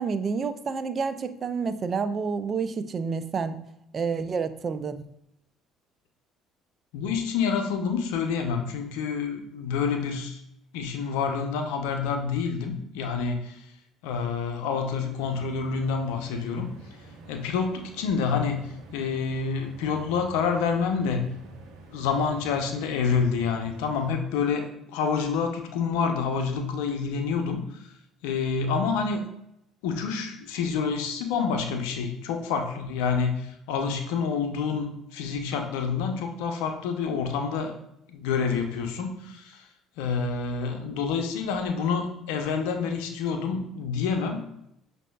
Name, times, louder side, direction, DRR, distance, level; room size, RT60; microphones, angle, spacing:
voice 1, 0.0-3.6 3.9-5.0, right 5 dB, 40° right, 11 dB, 0.4 m, -29 dB
voice 2, 6.9-10.4 10.7-13.6 14.0-16.7 17.3-21.3 21.9-27.9 28.2-29.3 29.8-37.7 38.1-39.6 40.0-44.4, left 5 dB, 80° left, 5 dB, 0.6 m, -28 dB
sound 1, 15.1-24.2, right 2 dB, 75° right, 0.8 m, -48 dB
6.1 x 2.7 x 2.3 m, 0.81 s
hypercardioid pair, 70°, 0 cm